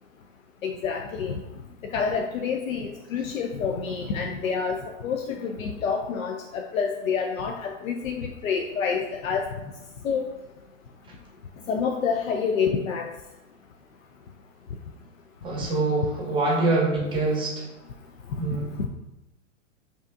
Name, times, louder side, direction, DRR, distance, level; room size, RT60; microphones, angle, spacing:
voice 1, 0.6-1.4 1.9-9.5 10.0-10.3 11.7-13.1, left 6 dB, 90° left, 2 dB, 0.5 m, -28 dB
voice 2, 15.4-17.7 18.4-18.9, right 2 dB, 10° right, -2 dB, 0.7 m, -25 dB
4.8 x 2.7 x 2.5 m, 1.0 s
hypercardioid pair, 120°, 39 cm